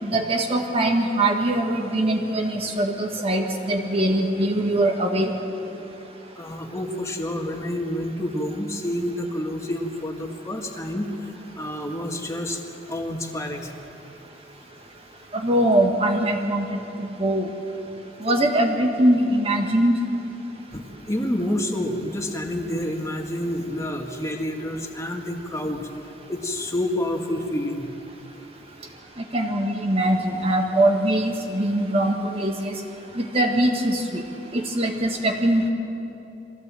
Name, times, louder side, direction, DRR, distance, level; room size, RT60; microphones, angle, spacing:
voice 1, 0.0-5.3 15.3-16.8 17.2-17.5 18.2-19.9 29.3-32.7 33.1-34.2 34.5-35.7, right 1 dB, 35° right, 2 dB, 1.6 m, -22 dB
voice 2, 6.4-12.6 12.9-13.7 20.7-25.9 26.3-27.9, left 1 dB, 15° left, 2 dB, 1.9 m, -28 dB
24.0 x 16.5 x 7.6 m, 2.8 s
head